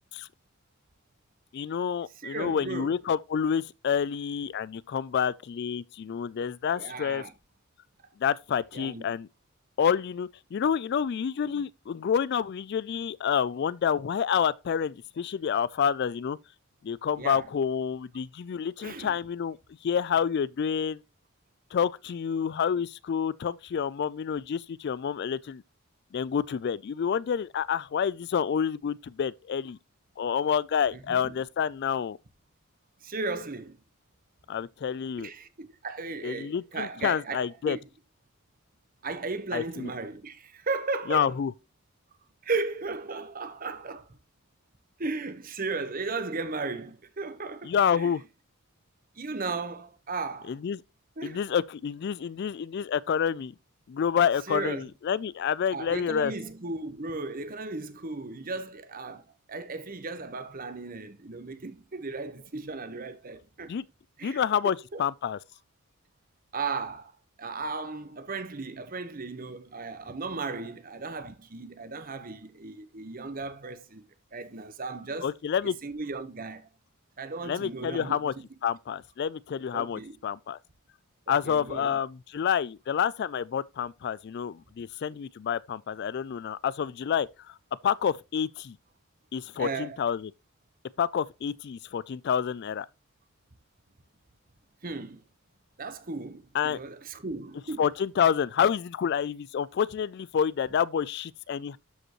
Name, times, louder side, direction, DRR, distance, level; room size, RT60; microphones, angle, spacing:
voice 1, 1.5-7.2 8.2-9.3 9.8-16.4 16.8-19.6 19.8-21.0 21.7-25.6 26.1-29.8 30.2-32.2 34.5-35.3 36.2-37.8 39.5-39.9 41.1-41.5 47.6-48.2 50.5-50.8 51.2-53.5 53.9-56.3 63.7-63.8 64.2-65.4 75.2-75.8 77.4-78.3 78.6-80.6 81.3-87.6 87.8-88.8 89.3-90.3 91.0-92.9 96.5-96.8 97.8-101.8, left 7 dB, 50° left, 0.3 m, -28 dB
voice 2, 2.2-3.0 6.8-7.3 8.7-9.0 17.2-17.4 18.8-19.1 30.9-31.3 33.0-33.8 35.2-37.8 39.0-41.3 42.4-44.1 45.0-48.1 49.2-50.5 51.2-51.4 54.5-54.8 55.7-59.2 59.5-63.7 64.2-64.4 64.9-65.0 66.5-67.1 67.4-74.0 74.3-75.3 75.8-76.7 77.2-78.2 79.7-80.2 81.3-82.0 89.6-90.0 94.8-95.2 95.8-97.9, right 3 dB, 40° right, 1.0 m, -35 dB
12.5 x 5.2 x 3.0 m
head